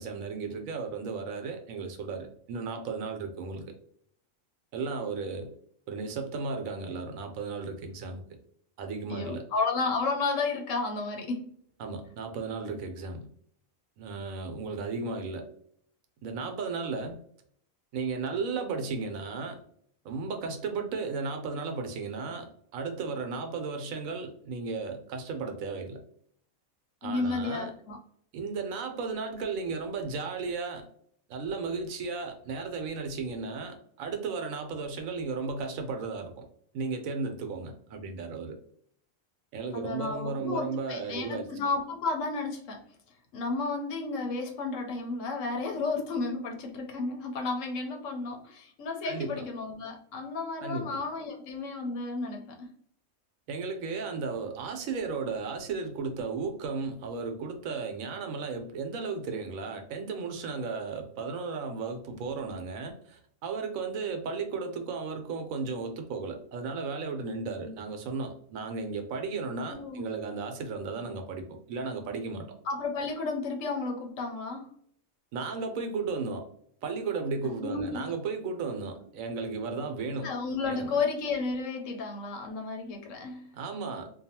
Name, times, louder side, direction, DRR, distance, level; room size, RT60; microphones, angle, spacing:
voice 1, 0.0-3.8 4.7-5.5 5.9-8.2 8.8-9.4 11.8-13.3 14.0-15.5 16.2-17.2 17.9-19.6 20.0-26.0 27.0-27.7 28.3-30.9 31.3-36.4 36.7-38.6 39.5-41.5 49.0-49.4 50.6-51.0 53.5-72.5 75.3-76.5 76.8-80.3 80.6-80.9 83.5-84.1, right 4 dB, 75° right, 1.0 m, -35 dB
voice 2, 9.1-11.6 27.0-28.0 39.7-42.8 43.3-52.7 67.6-67.7 69.7-70.0 72.7-74.7 77.6-78.2 80.2-83.5, left 3 dB, 70° left, 1.0 m, -32 dB
2.6 x 2.3 x 2.7 m
omnidirectional pair, 1.4 m